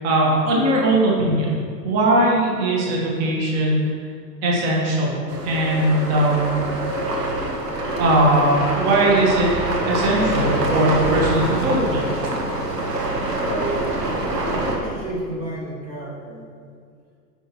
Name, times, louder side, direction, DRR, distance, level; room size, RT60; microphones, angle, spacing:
voice 1, 0.0-1.6 1.8-3.9 4.4-5.1 5.4-6.6 7.9-9.5 9.8-12.4, right 1 dB, 30° right, -3 dB, 1.6 m, -19 dB
sound 1, 5.3-14.8, right 1 dB, 75° right, 1.3 m, -25 dB
voice 2, 13.4-13.8 14.5-16.4, right 2 dB, 90° right, -5 dB, 1.9 m, -31 dB
8.9 x 5.7 x 3.1 m, 2.2 s
figure-of-eight pair, 95°, 49 cm